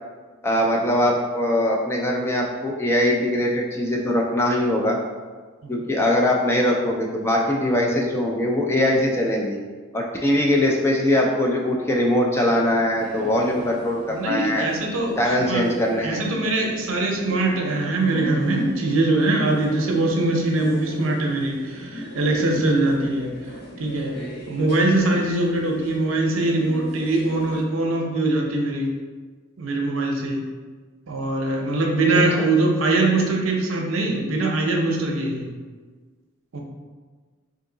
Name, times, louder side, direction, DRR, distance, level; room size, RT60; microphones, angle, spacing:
voice 1, 0.4-5.0 5.7-9.6 9.9-14.7 15.2-16.2 32.4-32.5, left 1 dB, 10° left, -1 dB, 0.4 m, -21 dB
sound 1, 13.0-27.6, equal, 50° left, 1.1 m, -38 dB
voice 2, 14.1-15.6 16.0-23.3 23.8-24.1 24.5-28.9 29.6-30.4 31.1-35.5 36.5-36.6, right 2 dB, 75° right, 1 dB, 0.7 m, -22 dB
3.6 x 2.7 x 3.8 m, 1.4 s
head